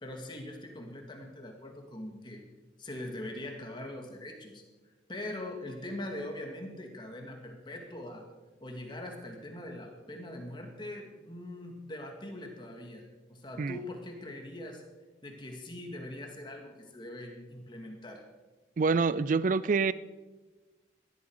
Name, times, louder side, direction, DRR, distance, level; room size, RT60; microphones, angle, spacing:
voice 1, 0.0-2.4 2.8-4.6 5.1-8.3 8.6-14.8 15.2-18.2, left 1 dB, 25° left, 3 dB, 2.1 m, -42 dB
voice 2, 18.8-19.9, right 4 dB, 45° right, 17 dB, 0.4 m, -26 dB
17.5 x 12.5 x 4.8 m, 1.3 s
head